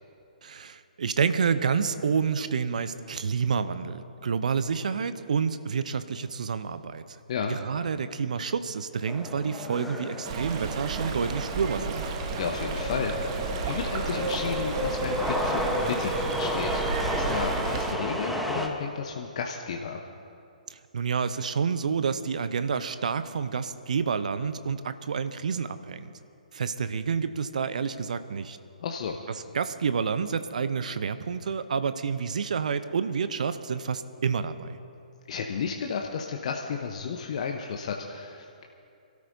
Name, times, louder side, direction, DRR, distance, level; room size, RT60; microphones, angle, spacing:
voice 1, 0.4-7.2 7.5-12.1 20.7-26.1 26.5-28.6 29.5-34.8, right 6 dB, 65° right, 12 dB, 0.7 m, -29 dB
sound 1, 9.1-18.7, equal, ahead, 1.0 m, -32 dB
Stream, 10.2-17.9, right 5 dB, 40° right, 1.1 m, -33 dB
voice 2, 12.4-20.0 28.8-29.2 35.3-38.6, left 6 dB, 50° left, 2 dB, 0.9 m, -33 dB
26.5 x 13.0 x 2.7 m, 2.6 s
figure-of-eight pair, 125°, 4 cm